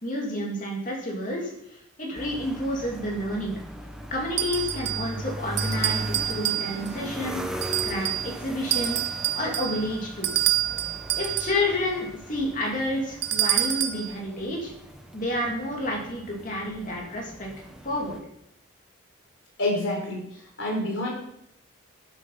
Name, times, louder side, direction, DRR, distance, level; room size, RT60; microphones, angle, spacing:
voice 1, 0.0-3.5 4.1-9.0 9.3-10.5 11.2-14.7 15.1-18.2, left 1 dB, 40° left, -2 dB, 2.8 m, -30 dB
sound 1, 2.2-18.2, equal, 5° right, 0.8 m, -38 dB
sound 2, 4.4-5.1 5.6-7.0 7.6-8.3 8.7-11.6 13.2-14.1, right 12 dB, 55° right, 0.8 m, -27 dB
voice 2, 19.6-20.2 20.6-21.1, left 1 dB, 65° left, -1 dB, 3.8 m, -27 dB
8.4 x 8.1 x 5.7 m, 0.76 s
head